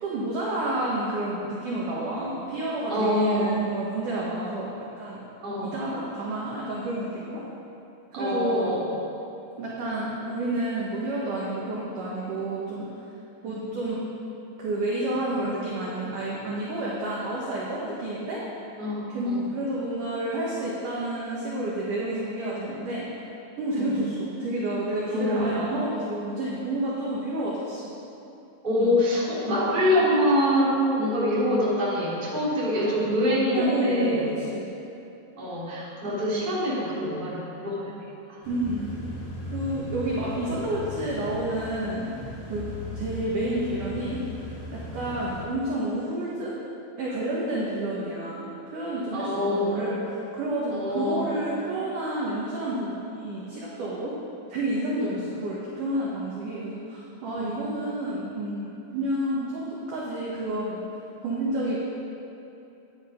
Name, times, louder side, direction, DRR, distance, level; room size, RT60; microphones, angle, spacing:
voice 1, 0.0-4.7 5.0-5.2 5.6-7.4 8.1-8.7 9.6-13.0 13.4-14.0 14.6-18.4 19.1-23.0 23.6-27.9 28.8-29.0 33.5-34.7 36.1-36.2 38.5-38.9 39.4-42.1 42.5-42.7 42.9-44.2 44.7-46.6 47.0-54.1 54.5-60.8 61.2-61.8, right 1 dB, 70° right, -6 dB, 1.9 m, -30 dB
voice 2, 2.9-3.5 5.4-5.7 8.1-8.9 13.5-13.6 18.8-19.4 23.8-23.9 25.1-25.5 28.6-34.3 35.4-37.9 38.3-38.4 49.1-49.8 50.7-51.2 57.4-57.5, left 1 dB, 15° right, -9 dB, 2.2 m, -25 dB
sound 1, 38.4-45.4, left 1 dB, 70° left, 1.0 m, -38 dB
12.0 x 10.0 x 5.1 m, 2.9 s
omnidirectional pair, 5.7 m